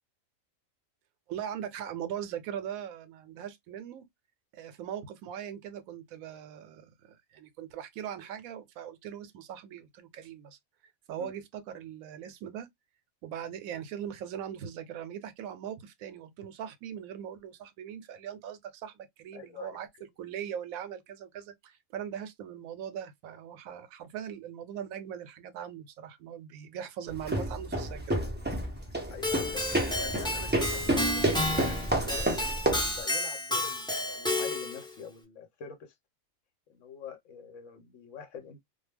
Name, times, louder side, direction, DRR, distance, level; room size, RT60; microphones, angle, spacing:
voice 1, 1.3-4.0 4.5-10.6 11.1-12.7 13.2-19.9 20.2-28.2 31.5-31.6, right 9 dB, 85° right, 1.0 m, -40 dB
voice 2, 19.3-19.7 29.1-32.5 32.9-35.9 36.7-38.6, left 7 dB, 70° left, 1.0 m, -45 dB
sound 1, 27.1-33.0, right 1 dB, 15° right, 0.3 m, -30 dB
Keyboard (musical), 29.2-34.9, left 1 dB, 5° left, 0.7 m, -31 dB
2.3 x 2.2 x 3.2 m
omnidirectional pair, 1.4 m